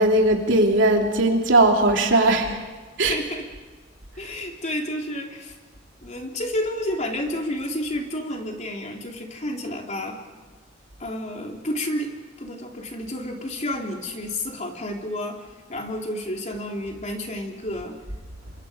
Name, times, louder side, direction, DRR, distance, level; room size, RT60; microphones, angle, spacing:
voice 1, 0.0-2.6 3.0-3.2, right 2 dB, 85° right, 2 dB, 3.1 m, -19 dB
voice 2, 3.1-3.5 4.2-5.5 6.0-10.2 11.0-12.1 12.4-15.4 15.7-18.0, left 1 dB, 40° left, 1 dB, 3.3 m, -30 dB
29.5 x 25.5 x 5.2 m, 1.4 s
head